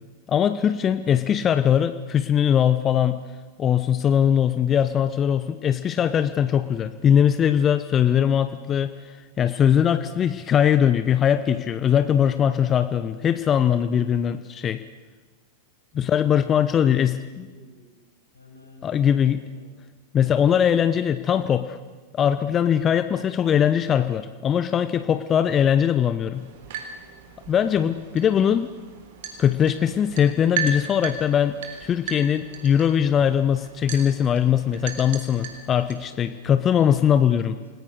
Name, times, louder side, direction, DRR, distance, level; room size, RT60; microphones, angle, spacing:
voice 1, 0.3-3.2 3.6-8.9 9.4-14.8 15.9-17.5 18.8-19.4 20.1-21.8 22.1-26.4 27.5-28.7 29.4-37.6, left 9 dB, 25° left, 11 dB, 0.8 m, -21 dB
voice 2, 0.9-1.5 15.9-17.0 17.3-17.9 18.3-19.7 27.9-28.3 36.0-37.8, left 2 dB, 85° left, -2 dB, 7.3 m, -50 dB
sound 1, 26.3-36.1, right 6 dB, 55° right, 3.6 m, -36 dB
28.5 x 20.0 x 6.5 m, 1.3 s
figure-of-eight pair, 90°, 0 cm